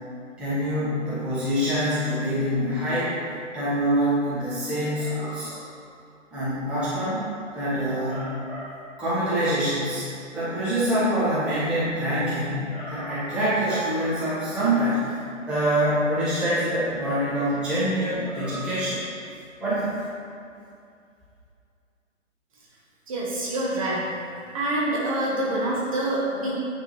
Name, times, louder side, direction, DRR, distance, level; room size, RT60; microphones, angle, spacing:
voice 1, 0.4-3.1 3.5-5.6 6.3-7.2 7.5-10.1 10.3-15.1 15.5-19.0 19.6-19.9, equal, 5° right, -13 dB, 1.0 m, -25 dB
voice 2, 23.1-24.1 24.5-26.6, right 1 dB, 25° right, -6 dB, 1.0 m, -26 dB
9.3 x 3.7 x 4.5 m, 2.5 s
figure-of-eight pair, 140°, 39 cm